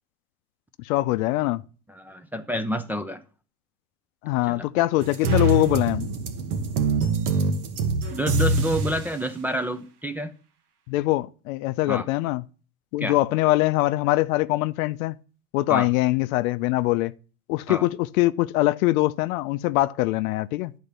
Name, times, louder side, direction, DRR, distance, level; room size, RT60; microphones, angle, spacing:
voice 1, 0.8-1.6 4.2-6.1 10.9-12.4 12.9-15.1 15.5-17.1 17.5-20.8, left 18 dB, 65° left, 0.6 m, -23 dB
voice 2, 1.9-3.2 4.5-4.7 8.1-10.3 11.9-12.1 13.0-13.1 15.7-15.9 17.7-17.9, equal, 5° right, 0.4 m, -28 dB
sound 1, 5.0-9.1, right 3 dB, 80° right, 1.4 m, -24 dB
10.0 x 4.1 x 6.7 m
supercardioid pair, 110°, 45 cm